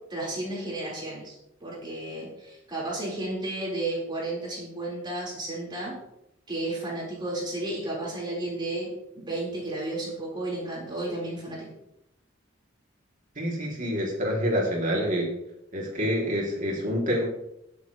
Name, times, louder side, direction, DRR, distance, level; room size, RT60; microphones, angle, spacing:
voice 1, 0.1-1.3 1.6-5.9 6.5-8.9 9.1-11.7, right 2 dB, 25° right, -5 dB, 4.4 m, -32 dB
voice 2, 13.4-15.3 15.7-17.3, equal, 40° right, -2 dB, 2.9 m, -27 dB
20.5 x 7.4 x 3.2 m, 0.83 s
head